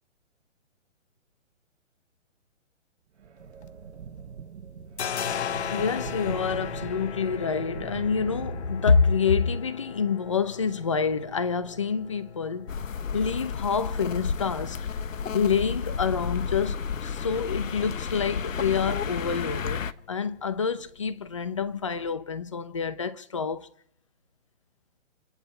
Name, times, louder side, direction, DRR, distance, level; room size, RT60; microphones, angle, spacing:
sound 1, 3.2-9.3, right 7 dB, 65° right, 1.1 m, -42 dB
sound 2, 3.4-4.3 4.6-22.1, left 8 dB, 60° left, 0.8 m, -40 dB
voice 1, 5.7-12.7 13.1-14.8 15.3-23.7, left 5 dB, 25° left, 0.6 m, -27 dB
sound 3, 12.7-19.9, left 6 dB, 90° left, 1.2 m, -32 dB
29.5 x 10.5 x 4.4 m
hypercardioid pair, 175°, 38 cm